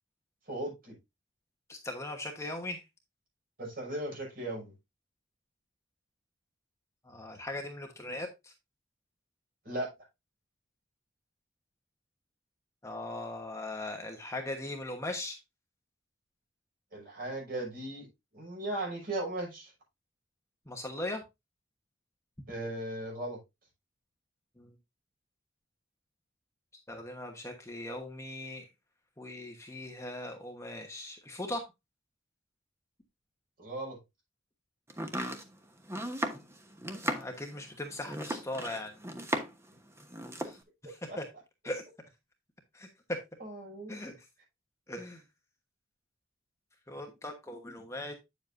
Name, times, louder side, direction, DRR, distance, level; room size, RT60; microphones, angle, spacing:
voice 1, 0.5-1.0 3.6-4.7 9.6-9.9 16.9-18.1 18.3-19.7 22.5-23.4 33.6-34.0 40.8-41.2 43.4-44.0, right 1 dB, 50° right, -1 dB, 6.1 m, -37 dB
voice 2, 1.7-2.8 7.1-8.5 12.8-15.4 20.7-21.2 24.6-24.7 26.9-28.6 29.2-31.7 37.0-39.0 40.4-40.6 41.2-41.3 41.6-41.8 42.7-42.9 43.9-44.2 44.9-45.2 46.9-48.1, left 1 dB, 15° left, 3 dB, 1.1 m, -39 dB
Domestic sounds home sounds, 34.9-39.7 40.0-40.6, right 1 dB, 15° right, 1.1 m, -36 dB
9.2 x 7.2 x 2.6 m, 0.22 s
head